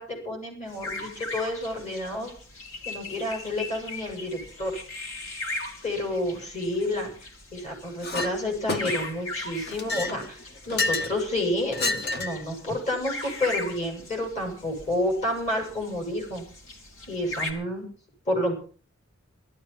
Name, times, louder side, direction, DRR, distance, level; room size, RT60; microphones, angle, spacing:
voice 1, 0.0-2.3 2.8-4.7 5.8-7.1 7.5-10.4 10.7-16.4 17.1-17.9 18.3-18.5, left 1 dB, 35° left, 1 dB, 7.8 m, -29 dB
sound 1, 0.7-17.5, left 2 dB, 65° left, 3.4 m, -39 dB
Chink clink, 8.0-8.3 8.7-9.2 9.7-11.2 11.7-12.4, left 3 dB, 50° left, 1.8 m, -29 dB
17.5 x 13.5 x 5.8 m, 0.41 s
head